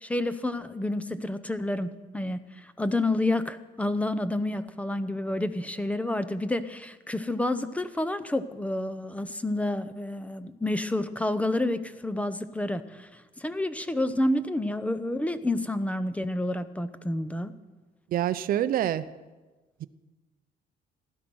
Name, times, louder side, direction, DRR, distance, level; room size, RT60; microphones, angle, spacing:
voice 1, 0.0-17.5, left 1 dB, 10° left, 13 dB, 0.8 m, -29 dB
voice 2, 18.1-19.1 19.8-19.9, right 11 dB, 60° right, 13 dB, 0.7 m, -26 dB
16.0 x 12.0 x 6.3 m, 1.2 s
cardioid pair, 110°, 17 cm